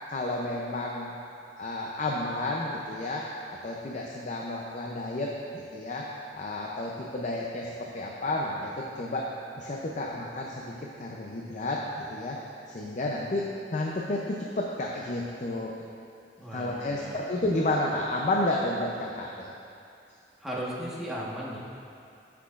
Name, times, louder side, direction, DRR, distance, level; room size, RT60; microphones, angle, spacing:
voice 1, 0.1-1.2 1.6-3.3 3.6-6.1 6.3-9.3 9.6-12.4 12.7-15.7 16.5-19.5, left 2 dB, 45° left, -2 dB, 0.6 m, -31 dB
voice 2, 16.4-17.1 20.4-21.6, equal, ahead, -7 dB, 1.3 m, -36 dB
14.0 x 6.0 x 2.5 m, 2.5 s
head